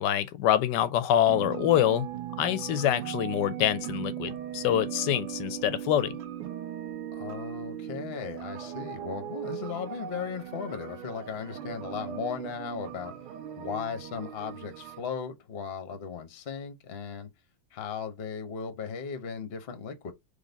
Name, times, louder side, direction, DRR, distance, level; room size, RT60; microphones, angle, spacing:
voice 1, 0.0-2.1 2.4-6.1, left 11 dB, 70° left, 1.1 m, -25 dB
sound 1, 1.3-15.0, right 11 dB, 90° right, 1.7 m, -38 dB
voice 2, 7.1-13.1 13.6-17.3 17.7-20.1, left 6 dB, 40° left, 0.9 m, -36 dB
3.9 x 3.4 x 3.9 m
omnidirectional pair, 2.2 m